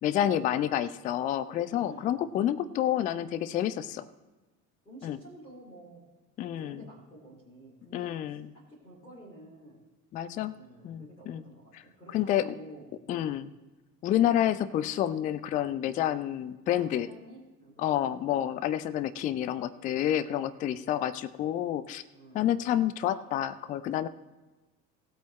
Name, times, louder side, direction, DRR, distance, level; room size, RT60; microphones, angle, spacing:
voice 1, 0.0-4.1 5.0-5.2 6.4-6.8 7.9-8.5 10.1-10.6 10.8-11.4 12.1-12.4 13.1-13.5 14.0-17.1 17.8-22.0 22.3-24.1, left 11 dB, 20° left, 15 dB, 0.3 m, -29 dB
voice 2, 1.7-2.1 4.8-6.0 6.5-9.8 10.5-13.3 16.6-18.2 20.3-20.9 22.1-22.4, equal, 90° left, -6 dB, 3.1 m, -51 dB
18.5 x 8.6 x 3.2 m, 1.2 s
figure-of-eight pair, 65°, 49 cm